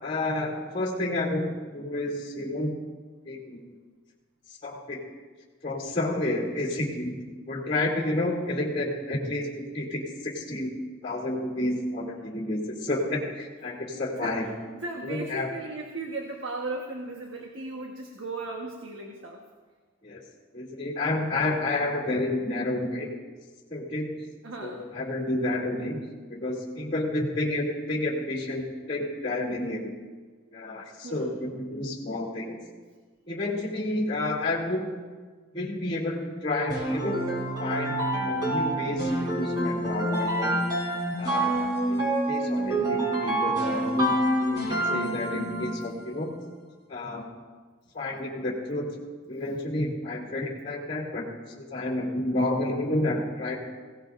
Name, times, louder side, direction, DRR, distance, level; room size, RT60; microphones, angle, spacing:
voice 1, 0.0-2.8 3.3-3.6 4.6-5.0 5.6-7.1 7.5-10.7 11.0-14.5 15.0-15.5 20.0-20.2 20.5-23.1 23.7-24.2 24.6-26.0 26.3-29.9 30.5-32.6 33.3-34.9 35.5-37.2 37.6-40.6 41.2-41.6 41.9-46.4 46.9-47.3 47.9-48.9 49.3-51.3 51.5-53.6, left 1 dB, 30° left, -2 dB, 2.7 m, -30 dB
voice 2, 14.7-19.4 24.4-24.8 31.0-31.4, right 2 dB, 80° right, 1 dB, 1.3 m, -36 dB
sound 1, 36.7-45.9, right 1 dB, 20° right, 4.6 m, -27 dB
22.0 x 17.0 x 2.6 m, 1.4 s
head